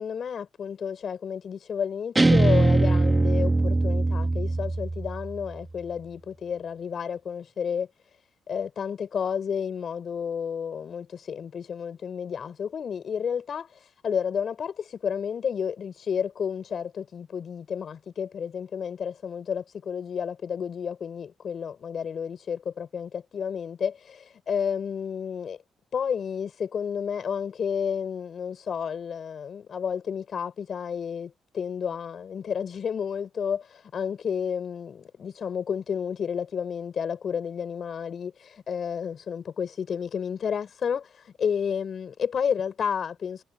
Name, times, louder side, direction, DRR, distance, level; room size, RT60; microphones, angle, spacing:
voice 1, 0.0-7.9 8.5-25.6 25.9-43.4, left 7 dB, 55° left, 6.4 m, -31 dB
Guitar, 2.2-5.4, right 2 dB, 20° right, 2.0 m, -21 dB
cardioid pair, 80°, 0 cm